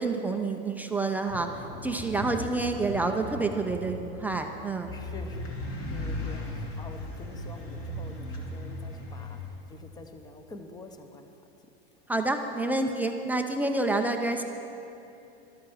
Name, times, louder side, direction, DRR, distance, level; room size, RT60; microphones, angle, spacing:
voice 1, 0.0-4.9 12.1-14.4, right 3 dB, 5° right, 3 dB, 0.3 m, -28 dB
Thunder, 1.3-7.7 8.0-8.6 9.1-9.9, left 1 dB, 30° left, 3.5 m, -42 dB
sound 1, 4.9-9.5, left 1 dB, 45° left, 2.4 m, -36 dB
voice 2, 4.9-5.5 5.9-11.3, left 2 dB, 15° left, 7 dB, 0.8 m, -46 dB
13.0 x 12.0 x 6.2 m, 2.9 s
supercardioid pair, 145°, 30 cm